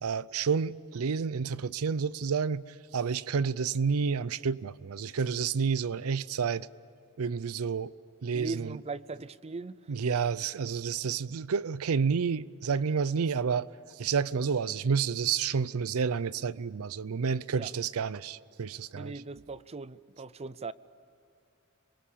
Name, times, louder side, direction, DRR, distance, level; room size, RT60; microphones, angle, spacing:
voice 1, 0.0-2.6 2.9-6.7 7.2-7.9 8.2-8.7 9.9-13.7 14.0-19.1, right 6 dB, 75° right, 0.5 m, -30 dB
voice 2, 8.3-9.8 17.6-17.7 18.9-20.7, right 3 dB, 30° right, 0.5 m, -39 dB
26.5 x 23.0 x 8.6 m
head